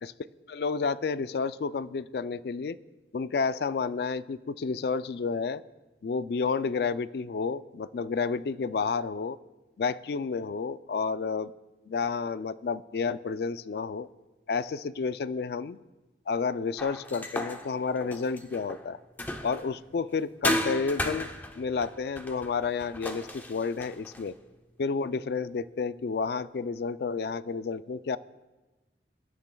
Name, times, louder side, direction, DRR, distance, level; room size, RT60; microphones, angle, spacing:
voice 1, 0.5-2.8 3.1-5.6 6.0-9.4 9.8-11.5 11.9-14.1 14.5-15.8 16.3-19.0 19.4-21.3 21.6-24.3 24.8-28.2, left 5 dB, 60° left, 15 dB, 0.3 m, -30 dB
sound 1, 16.8-19.8 20.4-24.3, left 1 dB, 10° left, 0.7 m, -34 dB
23.5 x 12.0 x 2.3 m, 1.2 s
head